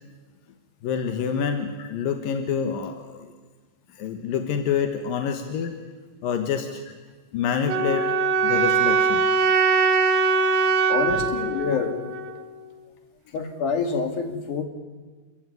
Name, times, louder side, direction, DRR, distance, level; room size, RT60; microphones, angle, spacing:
voice 1, 0.8-3.3 3.9-5.8 6.2-6.8 7.3-8.1 8.4-9.2 11.1-11.8 12.3-12.5, left 7 dB, 90° left, 6 dB, 3.2 m, -27 dB
sound 1, 7.7-12.7, right 4 dB, 65° right, 2.1 m, -22 dB
voice 2, 10.9-11.9 13.3-14.6, left 5 dB, 70° left, 6 dB, 3.7 m, -26 dB
27.5 x 15.0 x 9.3 m, 1.4 s
omnidirectional pair, 3.9 m